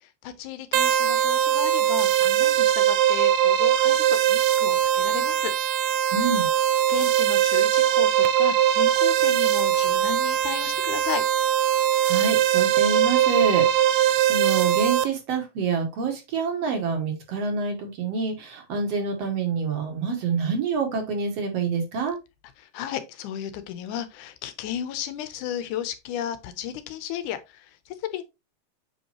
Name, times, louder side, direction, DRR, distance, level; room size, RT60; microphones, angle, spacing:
voice 1, 0.0-5.5 6.9-11.3 22.6-28.2, left 10 dB, 85° left, 2.3 m, -34 dB
sound 1, 0.7-15.1, right 11 dB, 75° right, 1.7 m, -21 dB
voice 2, 6.1-6.5 12.0-22.2, right 5 dB, 60° right, 2.3 m, -27 dB
7.3 x 5.4 x 2.9 m
omnidirectional pair, 3.5 m